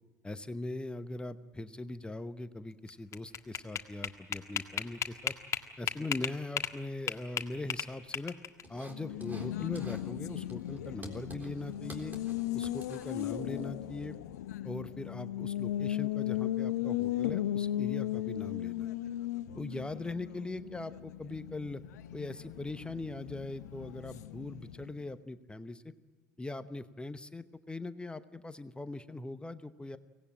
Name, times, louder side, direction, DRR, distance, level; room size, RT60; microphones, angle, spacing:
voice 1, 0.2-5.3 5.8-8.3 8.7-12.2 12.5-14.2 14.6-18.9 19.5-21.8 22.1-25.8 26.4-30.0, left 2 dB, 10° left, 12 dB, 1.0 m, -41 dB
sound 1, 2.9-6.8 7.1-8.6, left 8 dB, 35° left, 1.7 m, -34 dB
sound 2, 8.6-9.5 9.8-10.1 10.4-13.6, right 1 dB, 20° right, 3.7 m, -51 dB
Race car auto racing, 8.8-25.1, left 13 dB, 65° left, 0.8 m, -36 dB
24.0 x 18.0 x 8.9 m, 1.3 s
figure-of-eight pair, 70°, 9 cm